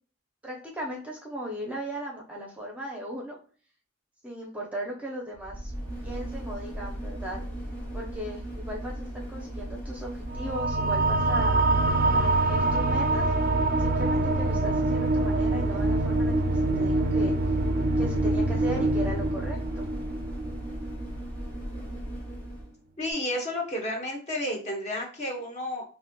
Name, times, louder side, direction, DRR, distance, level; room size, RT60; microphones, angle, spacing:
voice 1, 0.4-3.4 4.2-5.7 6.0-7.4 7.9-11.6 12.1-13.3 13.8-16.3 16.8-17.3 18.0-19.8, equal, 5° right, -1 dB, 0.6 m, -37 dB
sound 1, 5.3-22.7 23.1-23.2, right 1 dB, 10° left, 1.3 m, -37 dB
sound 2, 10.3-21.2, right 2 dB, 45° right, 0.4 m, -25 dB
voice 2, 23.0-25.8, left 1 dB, 35° left, 0 dB, 0.9 m, -31 dB
4.0 x 2.6 x 2.2 m, 0.41 s
head